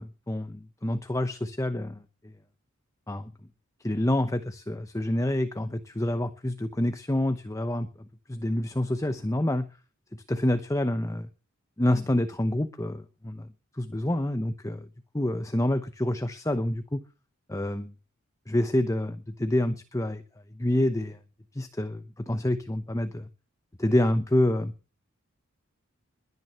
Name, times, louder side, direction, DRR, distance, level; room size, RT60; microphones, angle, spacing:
voice 1, 0.0-2.3 3.1-3.3 3.8-9.7 10.1-11.3 11.8-13.5 13.7-14.9 15.1-17.0 17.5-17.9 18.5-20.2 20.5-21.2 21.5-23.3 23.8-24.7, left 1 dB, 15° left, 10 dB, 0.9 m, -27 dB
21.5 x 9.6 x 5.8 m, 0.37 s
head